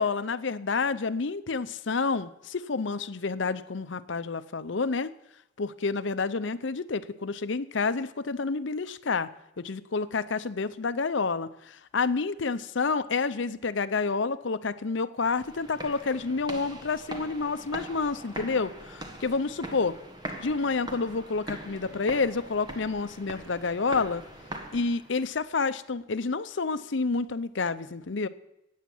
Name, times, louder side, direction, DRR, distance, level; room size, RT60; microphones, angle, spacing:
voice 1, 0.0-5.1 5.6-9.3 9.6-19.9 20.4-24.2 24.7-28.3, left 4 dB, 65° left, 13 dB, 0.6 m, -29 dB
sound 1, 15.2-25.3, right 1 dB, 20° right, 1.5 m, -42 dB
14.0 x 9.4 x 7.2 m, 0.86 s
head